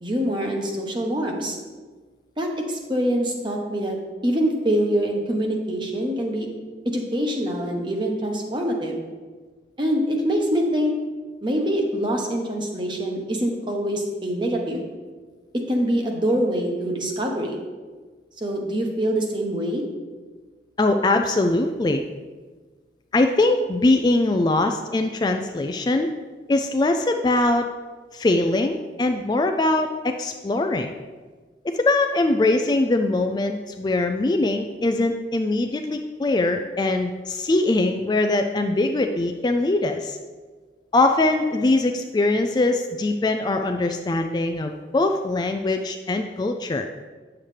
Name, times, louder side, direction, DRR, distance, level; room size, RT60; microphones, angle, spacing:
voice 1, 0.0-1.6 2.4-6.5 6.8-9.0 9.8-10.9 11.4-14.9 15.5-17.6 18.4-19.8, equal, 25° right, 1 dB, 1.0 m, -24 dB
voice 2, 20.8-22.0 23.1-26.1 26.5-27.7 28.1-30.9 31.6-40.2 40.9-46.9, left 2 dB, 25° left, 5 dB, 0.3 m, -22 dB
9.0 x 7.1 x 3.3 m, 1.4 s
head